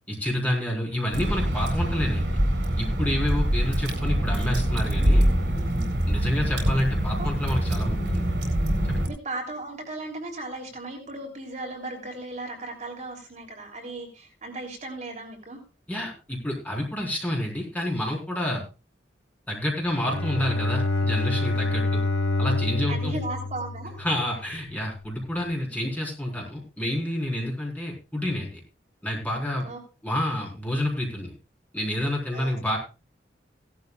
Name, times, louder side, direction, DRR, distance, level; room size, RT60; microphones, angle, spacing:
voice 1, 0.1-2.3 2.8-5.3 6.1-8.2 8.9-9.1 15.9-18.6 19.5-22.0 22.4-23.1 24.0-28.6 29.0-29.7 30.0-31.3 31.7-32.8, left 1 dB, 10° left, -2 dB, 4.3 m, -29 dB
Water / Drip, 1.1-9.1, equal, 80° right, 4.1 m, -24 dB
voice 2, 6.1-6.4 7.2-7.3 9.1-15.6 22.9-24.0 29.6-29.8 32.3-32.5, right 2 dB, 45° right, 0 dB, 3.3 m, -36 dB
Bowed string instrument, 20.0-24.5, left 2 dB, 85° left, 2.1 m, -27 dB
17.0 x 12.0 x 2.4 m, 0.32 s
head